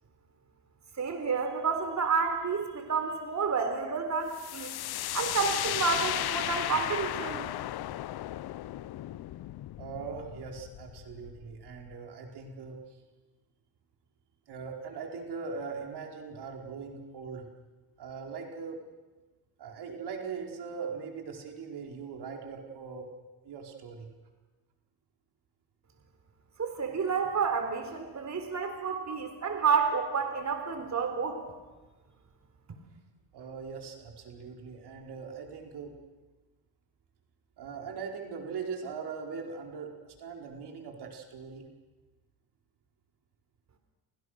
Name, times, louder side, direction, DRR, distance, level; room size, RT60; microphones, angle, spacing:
voice 1, 1.0-4.7 5.1-7.5 26.6-31.4, right 5 dB, 40° right, 5 dB, 4.0 m, -30 dB
sound 1, 4.3-11.9, left 14 dB, 60° left, 0.8 m, -35 dB
voice 2, 9.8-12.8 14.5-17.5 18.0-18.8 19.6-23.0 23.4-24.1 33.3-35.9 37.6-41.7, right 5 dB, 65° right, 2 dB, 4.7 m, -40 dB
29.5 x 24.5 x 6.6 m, 1.2 s
cardioid pair, 90°, 42 cm